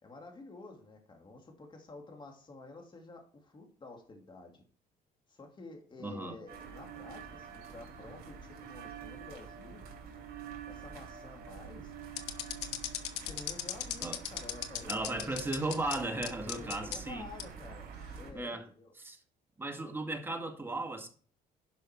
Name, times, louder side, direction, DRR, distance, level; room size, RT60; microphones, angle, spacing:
voice 1, 0.0-4.6 5.3-9.8 10.7-11.9 13.1-14.9 16.4-18.9, left 3 dB, 30° left, 2.5 m, -50 dB
voice 2, 6.0-6.4 14.0-14.2 14.9-17.2 18.3-18.7 19.0-19.2 19.6-21.1, right 2 dB, 15° right, 1.9 m, -36 dB
sound 1, 6.5-18.3, right 7 dB, 65° right, 3.3 m, -47 dB
sound 2, 12.2-16.0 16.2-17.0 17.4-17.5 18.2-18.4, left 12 dB, 85° left, 1.1 m, -36 dB
11.0 x 5.7 x 4.5 m
cardioid pair, 110°, 17 cm